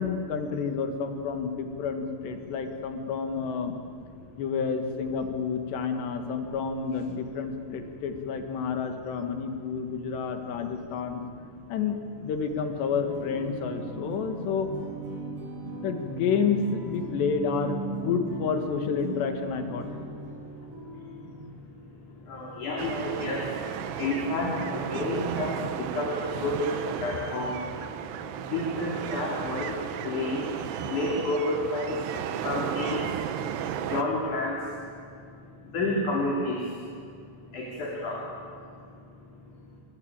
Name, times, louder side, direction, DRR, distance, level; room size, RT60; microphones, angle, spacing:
voice 1, 0.0-3.7 4.4-11.2 11.7-14.7 15.8-19.9, left 6 dB, 75° left, 6 dB, 3.9 m, -29 dB
sound 1, 12.9-21.4, right 3 dB, 30° right, 6.2 m, -38 dB
voice 2, 15.2-15.8 20.4-39.5, left 2 dB, 50° left, -2 dB, 4.5 m, -32 dB
sound 2, 22.8-34.0, right 9 dB, 75° right, 3.1 m, -34 dB
29.0 x 22.5 x 8.9 m, 2.3 s
omnidirectional pair, 5.0 m